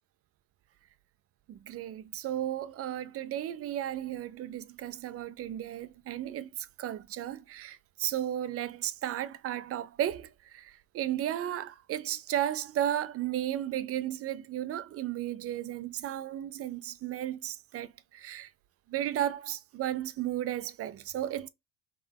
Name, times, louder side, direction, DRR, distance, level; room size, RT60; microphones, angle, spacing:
voice 1, 1.5-6.5 6.8-18.5 18.9-21.5, right 11 dB, 35° right, 0.4 m, -34 dB
3.6 x 3.4 x 3.4 m
hypercardioid pair, 80°, 41 cm